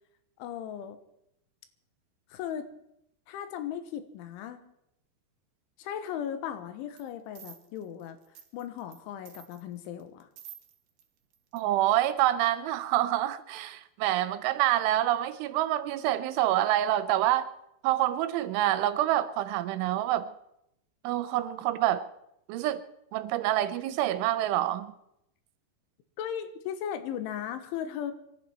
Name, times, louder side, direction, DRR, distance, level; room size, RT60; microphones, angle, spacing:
voice 1, 0.4-1.0 2.3-2.7 3.3-4.7 5.8-8.2 8.5-10.3 26.2-28.1, left 9 dB, 85° left, 3.7 m, -37 dB
sound 1, 7.0-7.1 7.4-9.0 9.3-11.0 11.3-11.6 12.0-12.1, right 10 dB, 65° right, 2.7 m, -50 dB
voice 2, 11.5-17.5 17.8-20.3 21.0-22.1 22.5-22.8 23.1-24.9, right 13 dB, 85° right, 3.3 m, -27 dB
25.0 x 12.0 x 4.4 m
omnidirectional pair, 5.4 m